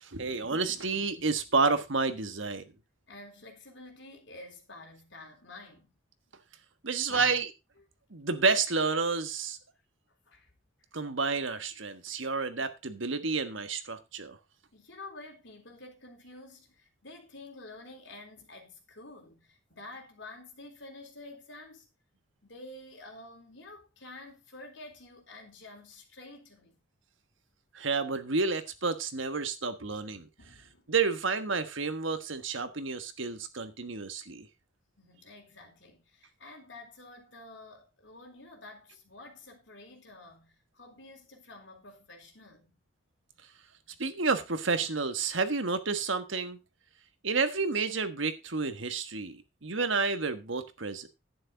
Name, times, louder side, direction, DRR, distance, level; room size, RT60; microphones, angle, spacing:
voice 1, 0.0-2.6 6.8-7.5 8.1-9.6 10.9-14.4 27.7-30.3 30.9-34.5 44.0-46.6 47.2-51.1, right 4 dB, 75° right, 1.3 m, -30 dB
voice 2, 3.1-6.0 7.1-7.4 7.8-7.9 10.3-10.5 14.7-21.9 22.4-26.8 29.8-30.1 30.4-30.9 35.0-42.8, left 2 dB, 65° left, 3.7 m, -49 dB
11.0 x 9.5 x 3.8 m
head